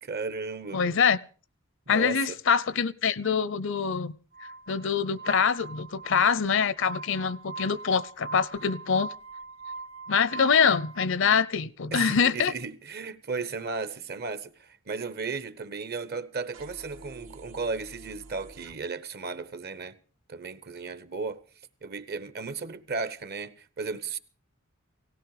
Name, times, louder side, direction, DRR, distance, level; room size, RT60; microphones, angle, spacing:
voice 1, 0.0-1.0 1.9-2.4 11.9-20.0 20.3-21.4 21.8-24.2, right 4 dB, 50° right, 1.1 m, -35 dB
voice 2, 0.7-1.2 1.9-4.1 4.7-9.1 10.1-12.5, left 6 dB, 65° left, 0.7 m, -24 dB
Glass, 4.3-11.1, right 4 dB, 30° right, 0.8 m, -42 dB
sound 1, 16.5-18.7, right 2 dB, 85° right, 2.9 m, -48 dB
18.0 x 16.0 x 4.9 m
head